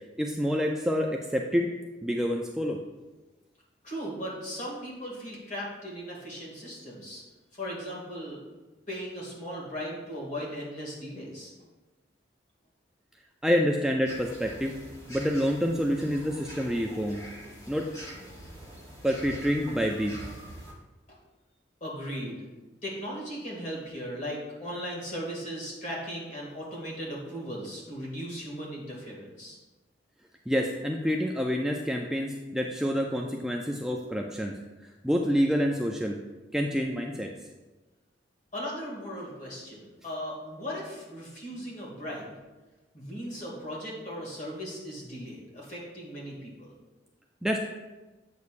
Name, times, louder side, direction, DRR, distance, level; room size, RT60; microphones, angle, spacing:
voice 1, 0.2-1.7 2.0-2.8 13.4-14.8 15.1-17.2 17.7-17.9 19.0-20.1 30.5-34.5 35.0-36.2 36.5-37.3 47.4-47.6, equal, 5° right, 0 dB, 0.3 m, -27 dB
voice 2, 3.8-7.2 7.5-8.4 8.9-11.5 21.1-21.2 21.8-22.5 22.8-29.6 38.5-42.3 42.9-46.7, equal, 40° left, -4 dB, 2.1 m, -37 dB
sound 1, 14.1-20.7, equal, 20° left, 1.2 m, -45 dB
8.2 x 6.3 x 2.5 m, 1.2 s
head